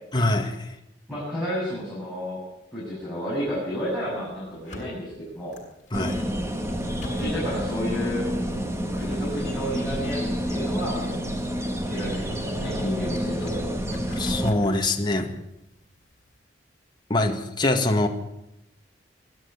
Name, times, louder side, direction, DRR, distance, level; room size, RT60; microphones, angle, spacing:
voice 1, 0.1-0.8 5.9-6.2 14.1-15.3 17.1-18.1, left 2 dB, 25° left, 2 dB, 1.9 m, -24 dB
voice 2, 1.1-2.4 2.7-5.5 7.0-8.3 8.9-11.3 11.7-13.7, equal, 5° left, -9 dB, 7.6 m, -31 dB
sound 1, 3.3-16.4, left 1 dB, 40° left, 7.3 m, -47 dB
sound 2, 5.9-14.5, equal, 15° right, 2.0 m, -29 dB
20.5 x 13.0 x 9.8 m, 0.88 s
head